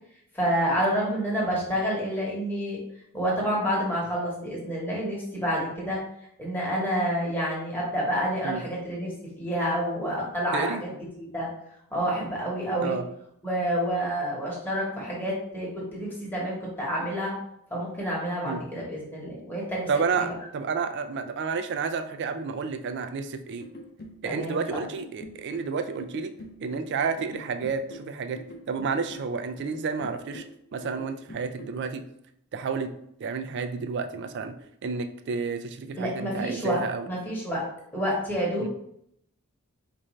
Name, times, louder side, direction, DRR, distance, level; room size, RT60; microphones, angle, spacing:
voice 1, 0.3-2.8 3.1-6.0 6.4-9.1 9.4-10.9 11.2-11.5 11.9-13.0 13.4-17.3 17.7-20.3 24.2-24.8 36.0-36.8 37.1-37.6 37.9-38.7, equal, 10° left, -5 dB, 1.1 m, -28 dB
voice 2, 19.9-23.7 24.2-26.3 26.6-28.4 28.7-30.4 30.7-32.0 32.5-32.9 33.2-34.5 34.8-37.1 38.6-38.7, right 5 dB, 50° right, 8 dB, 0.3 m, -30 dB
sound 1, 23.6-31.8, left 1 dB, 45° left, 0.5 m, -45 dB
4.4 x 2.5 x 3.1 m, 0.73 s
head